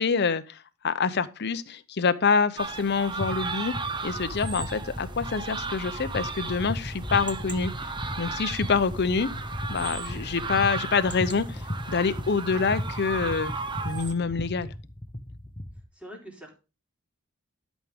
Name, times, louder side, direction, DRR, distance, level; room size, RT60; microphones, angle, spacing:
voice 1, 0.0-3.7 4.0-7.7 8.2-9.3 9.7-13.5 13.8-14.7, left 5 dB, 50° left, 0.7 m, -26 dB
sound 1, 2.6-14.1, right 4 dB, 20° right, 0.9 m, -36 dB
sound 2, 3.2-15.8, left 1 dB, 25° left, 1.1 m, -36 dB
sound 3, 4.1-10.5, equal, 40° right, 3.9 m, -46 dB
voice 2, 15.7-16.6, equal, 5° right, 3.3 m, -45 dB
12.0 x 6.3 x 3.5 m
head